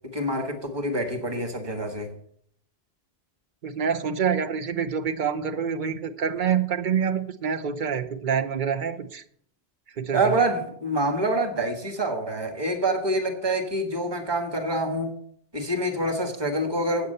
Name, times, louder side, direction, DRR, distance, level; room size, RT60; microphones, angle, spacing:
voice 1, 0.1-2.1 10.1-15.1 15.5-17.1, right 1 dB, 25° right, 1.5 m, -26 dB
voice 2, 3.6-9.2 10.0-10.3, right 7 dB, 55° right, 0.9 m, -26 dB
8.3 x 8.0 x 6.7 m
omnidirectional pair, 1.1 m